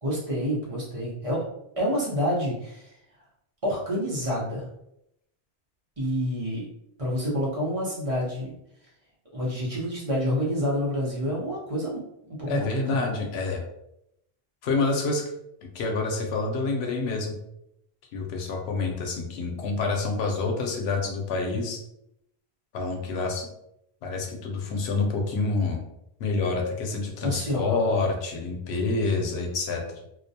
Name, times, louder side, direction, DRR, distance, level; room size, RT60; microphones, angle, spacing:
voice 1, 0.0-1.4 1.8-2.9 3.6-4.7 6.0-6.7 7.0-8.5 9.3-13.0 27.2-28.0, equal, 35° right, -7 dB, 0.7 m, -28 dB
voice 2, 12.5-13.6 14.6-15.2 15.7-17.3 18.1-21.8 22.7-23.5 24.0-25.8 26.2-30.0, left 3 dB, 85° left, 2 dB, 0.8 m, -27 dB
2.3 x 2.1 x 2.6 m, 0.81 s
omnidirectional pair, 1.1 m